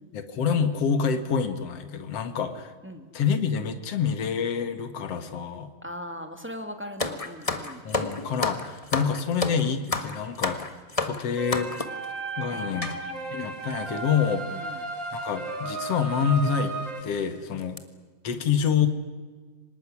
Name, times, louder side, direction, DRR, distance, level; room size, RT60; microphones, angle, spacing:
voice 1, 0.1-2.7 3.1-5.7 7.8-10.6 11.0-11.7 12.4-13.0 13.3-14.4 14.7-14.8 15.1-16.8 17.0-17.8 18.2-18.9, left 6 dB, 55° left, 9 dB, 2.6 m, -27 dB
voice 2, 5.8-7.8 12.5-13.4 14.5-14.8, equal, 5° right, 6 dB, 1.5 m, -40 dB
sound 1, 7.0-12.0 12.8-13.0 13.7-13.8 14.0-14.2 15.1-15.3 15.8-15.9 16.4-16.5 17.0-17.2 17.6-17.8, left 3 dB, 35° left, 0.5 m, -30 dB
sound 2, 11.4-17.0, right 3 dB, 35° right, 3.0 m, -34 dB
25.0 x 19.5 x 9.9 m, 1.4 s
omnidirectional pair, 3.6 m